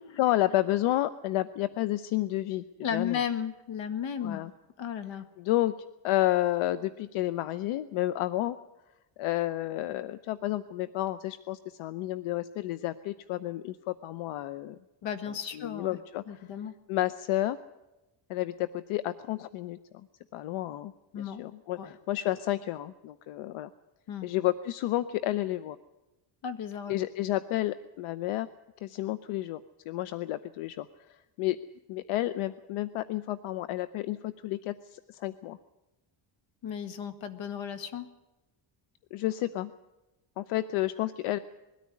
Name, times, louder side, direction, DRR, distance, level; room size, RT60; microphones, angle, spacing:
voice 1, 0.2-3.2 4.2-4.5 5.4-5.7 6.0-8.6 9.2-14.8 15.5-16.5 16.9-17.6 18.3-20.1 20.3-23.7 24.2-25.8 26.9-28.5 28.8-29.6 29.9-31.6 31.9-35.6 39.1-39.7 40.4-41.4, left 15 dB, 85° left, 14 dB, 0.8 m, -31 dB
voice 2, 2.8-4.4 4.8-5.3 15.0-16.0 16.3-16.7 21.1-21.4 21.8-21.9 24.1-24.3 26.4-26.9 36.6-38.1, left 8 dB, 65° left, 10 dB, 1.9 m, -34 dB
21.5 x 13.5 x 9.7 m, 1.0 s
cardioid pair, 100°, 48 cm